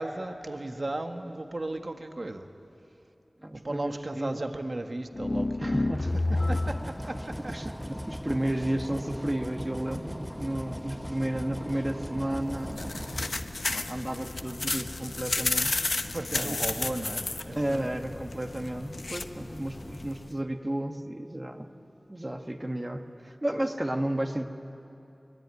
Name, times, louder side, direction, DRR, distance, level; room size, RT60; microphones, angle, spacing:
voice 1, 0.0-2.5 3.5-7.5 16.0-17.9, right 2 dB, 60° right, 6 dB, 1.4 m, -36 dB
voice 2, 3.4-4.4 5.6-6.6 6.8-7.0 7.3-13.3 13.7-15.8 16.3-16.6 17.5-21.8 22.1-24.5, right 1 dB, 30° right, 4 dB, 1.5 m, -33 dB
sound 1, 5.1-6.9, left 2 dB, 50° left, 0.8 m, -28 dB
sound 2, 6.1-14.1, equal, ahead, 0.8 m, -39 dB
sound 3, 12.4-20.3, left 2 dB, 75° left, 1.0 m, -33 dB
23.5 x 22.5 x 9.7 m, 2.8 s
wide cardioid pair, 45°, 0 cm